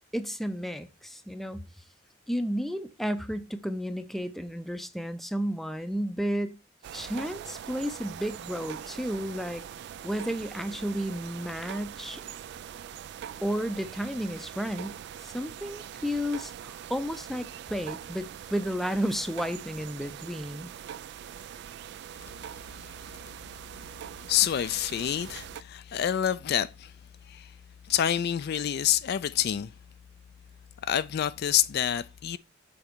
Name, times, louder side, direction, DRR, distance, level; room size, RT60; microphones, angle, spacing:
voice 1, 0.1-1.7 2.3-6.6 6.9-9.6 10.0-12.2 13.4-15.0 15.2-20.7, equal, ahead, 0.5 m, -32 dB
sound 1, 6.8-25.6, right 9 dB, 60° right, 0.3 m, -42 dB
voice 2, 24.3-26.9 27.2-27.5 27.8-29.7 30.8-32.4, left 10 dB, 55° left, 0.3 m, -27 dB
7.0 x 4.2 x 4.5 m
head